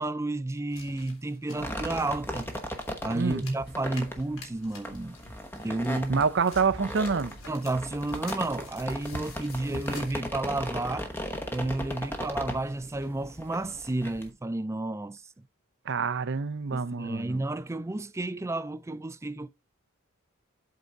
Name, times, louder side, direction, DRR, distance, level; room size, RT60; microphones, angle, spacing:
voice 1, 0.0-2.5 3.0-5.2 5.5-6.2 7.5-11.1 11.5-15.2 16.7-19.5, right 2 dB, 15° right, 0.3 m, -31 dB
sound 1, 0.7-10.2, left 1 dB, 75° left, 3.3 m, -48 dB
sound 2, 1.6-14.3, equal, 10° left, 1.0 m, -37 dB
sound 3, 2.1-13.3, equal, 45° left, 3.1 m, -52 dB
voice 2, 6.1-7.4 15.9-17.4, right 5 dB, 55° right, 0.6 m, -27 dB
8.2 x 3.9 x 5.7 m
head